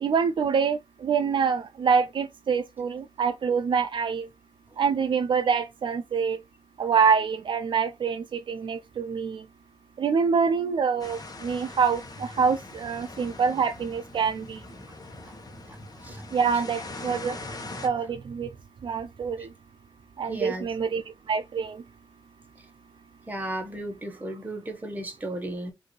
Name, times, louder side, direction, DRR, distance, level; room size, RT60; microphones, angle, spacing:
voice 1, 0.0-4.3 4.8-6.4 6.8-9.4 10.0-14.6 16.3-17.4 17.8-18.5 18.8-19.5 20.2-21.8, right 6 dB, 75° right, 0.4 m, -26 dB
sound 1, 11.0-17.9, left 2 dB, 50° left, 1.1 m, -41 dB
voice 2, 20.3-20.7 23.3-25.7, right 1 dB, 20° right, 1.2 m, -34 dB
4.6 x 2.7 x 3.1 m
wide cardioid pair, 110°, 9 cm